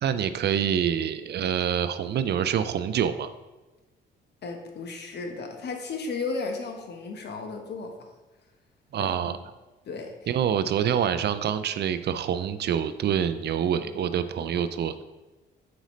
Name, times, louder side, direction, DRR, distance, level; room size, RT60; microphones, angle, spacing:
voice 1, 0.0-3.3 8.9-9.4 10.3-15.0, right 8 dB, 55° right, 12 dB, 0.4 m, -26 dB
voice 2, 4.4-7.9 9.0-9.5 9.8-10.1, left 4 dB, 60° left, 3 dB, 1.2 m, -34 dB
7.9 x 5.2 x 3.2 m, 1.1 s
cardioid pair, 90°, 20 cm